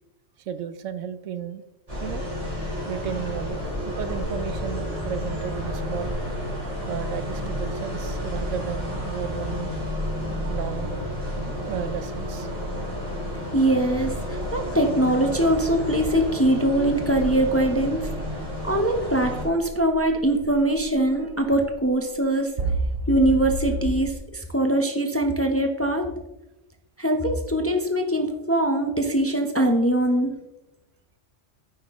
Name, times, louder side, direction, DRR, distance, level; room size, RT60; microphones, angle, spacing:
voice 1, 0.4-1.6 2.0-2.3 2.9-3.6 3.9-6.2 6.9-9.7 10.5-11.0 11.3-12.5, right 8 dB, 80° right, 12 dB, 1.0 m, -33 dB
sound 1, 1.9-19.4, equal, 30° right, 3.4 m, -31 dB
sound 2, 5.5-8.1 10.6-10.7 17.2-24.1, right 2 dB, 55° right, 1.0 m, -34 dB
voice 2, 13.5-18.1 18.6-22.5 23.1-26.1 27.0-30.3, right 1 dB, 15° left, 4 dB, 0.6 m, -22 dB
9.9 x 7.6 x 3.0 m, 0.94 s
omnidirectional pair, 1.3 m